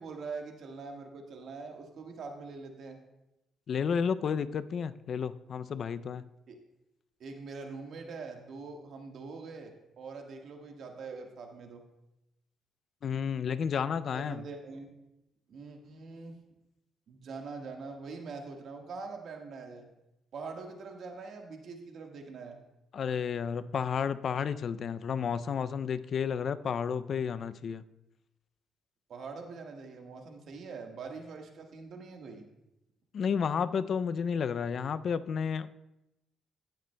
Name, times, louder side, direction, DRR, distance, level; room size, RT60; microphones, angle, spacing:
voice 1, 0.0-3.0 6.5-6.6 7.2-11.8 14.1-14.9 15.5-16.4 17.1-19.9 20.3-22.6 29.1-32.4, right 4 dB, 65° right, 3 dB, 1.4 m, -43 dB
voice 2, 3.7-6.2 13.0-14.4 22.9-27.8 33.1-35.7, left 7 dB, 55° left, 14 dB, 0.3 m, -31 dB
16.0 x 7.5 x 2.2 m, 0.91 s
cardioid pair, 90°, 0 cm